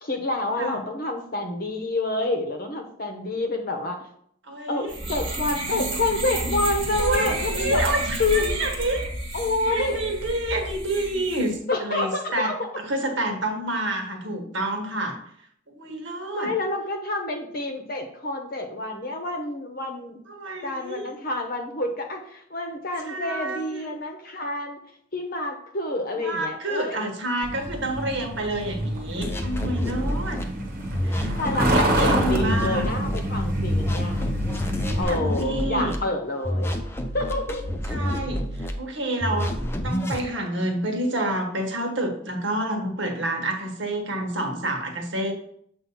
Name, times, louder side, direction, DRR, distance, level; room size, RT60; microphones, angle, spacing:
voice 1, 0.0-4.0 4.7-7.8 8.2-8.9 9.3-10.0 11.7-12.7 16.3-20.2 20.6-24.8 25.1-27.0 31.4-34.2 35.0-36.8 37.1-37.6, left 2 dB, 50° left, 5 dB, 0.9 m, -28 dB
voice 2, 4.5-4.9 7.0-9.0 9.6-15.2 15.7-16.5 20.3-21.1 23.1-23.9 26.2-30.4 31.0-32.9 34.8-36.0 37.9-39.5 39.8-45.3, right 1 dB, 70° right, 2 dB, 1.2 m, -28 dB
sound 1, 4.9-11.5, right 1 dB, 25° right, 1.2 m, -31 dB
Truck, 27.4-35.0, equal, 50° right, 1.1 m, -27 dB
sound 2, 29.2-30.4 30.9-33.2 33.7-36.0 36.4-38.7 39.2-40.2, equal, 10° left, 0.5 m, -29 dB
7.3 x 2.7 x 5.5 m, 0.68 s
head